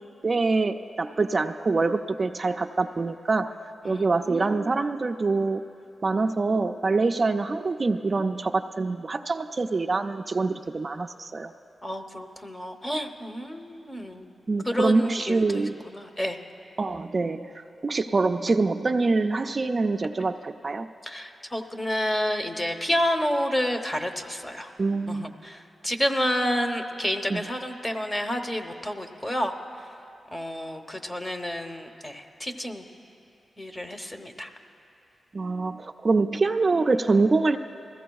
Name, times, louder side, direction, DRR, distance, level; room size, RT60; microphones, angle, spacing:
voice 1, 0.2-3.5 3.8-5.6 6.0-11.5 14.5-15.8 16.8-20.9 24.8-25.3 27.3-27.4 35.3-37.6, right 3 dB, 45° right, 5 dB, 0.4 m, -25 dB
voice 2, 3.8-4.9 11.8-14.3 14.6-16.4 21.0-24.7 25.1-29.5 30.3-32.8 33.6-34.5, equal, 20° left, 6 dB, 0.9 m, -30 dB
20.5 x 15.0 x 2.3 m, 2.7 s
cardioid pair, 60°, 0 cm